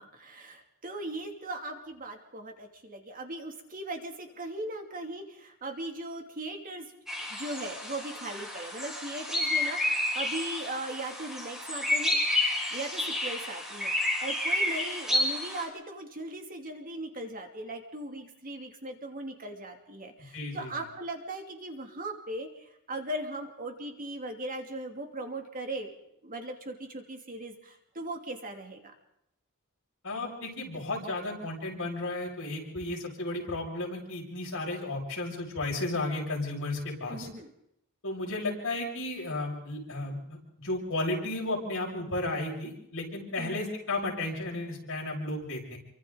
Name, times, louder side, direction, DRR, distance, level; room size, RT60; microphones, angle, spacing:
voice 1, 0.0-6.9 7.3-12.2 12.7-25.9 26.2-28.9 37.1-37.5 43.4-43.6, right 1 dB, 40° right, 3 dB, 2.7 m, -38 dB
sound 1, 7.1-15.6, left 1 dB, ahead, 6.0 m, -30 dB
voice 2, 20.3-20.7 30.0-37.3 38.0-45.8, left 2 dB, 60° left, -1 dB, 6.5 m, -33 dB
28.0 x 24.5 x 4.0 m, 0.77 s
head